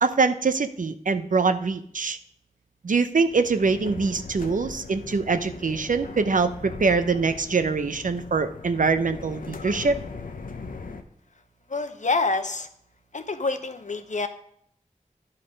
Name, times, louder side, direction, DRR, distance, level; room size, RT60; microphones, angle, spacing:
voice 1, 0.0-2.2 2.8-10.0, right 4 dB, 75° right, 10 dB, 0.7 m, -24 dB
sound 1, 3.2-11.0, left 4 dB, 90° left, 0.7 m, -39 dB
voice 2, 11.7-12.7 13.1-14.3, left 3 dB, 65° left, 9 dB, 0.9 m, -27 dB
10.0 x 5.7 x 5.2 m, 0.67 s
wide cardioid pair, 40°, 14 cm